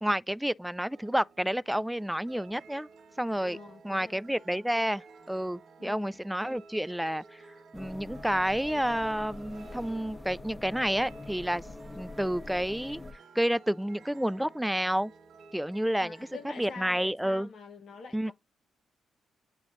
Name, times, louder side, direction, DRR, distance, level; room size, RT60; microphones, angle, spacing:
voice 1, 0.0-2.9 3.2-3.6 3.8-7.4 7.7-11.6 12.0-13.0 13.4-15.1 15.5-16.3 16.6-17.5 18.1-18.3, equal, 5° right, 0.3 m, -30 dB
sound 1, 0.9-17.1, right 4 dB, 65° right, 0.8 m, -54 dB
voice 2, 3.4-4.1 5.8-6.2 16.0-18.3, left 5 dB, 60° left, 1.1 m, -46 dB
sound 2, 7.7-13.1, left 2 dB, 10° left, 1.3 m, -44 dB
8.6 x 2.9 x 3.9 m
hypercardioid pair, 45°, 0 cm